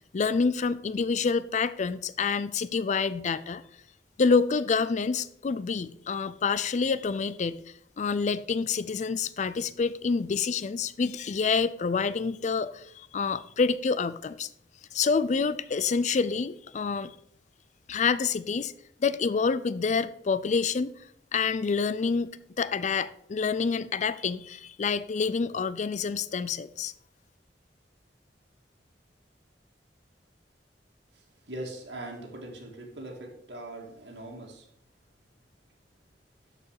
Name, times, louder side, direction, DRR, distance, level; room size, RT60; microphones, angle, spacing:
voice 1, 0.1-3.6 4.2-7.6 8.0-14.5 14.9-17.1 17.9-18.7 19.0-20.9 21.3-22.3 22.6-26.9, left 5 dB, 40° left, 0.4 m, -27 dB
voice 2, 31.5-34.6, right 1 dB, 85° right, 2.1 m, -41 dB
12.5 x 4.7 x 4.8 m
head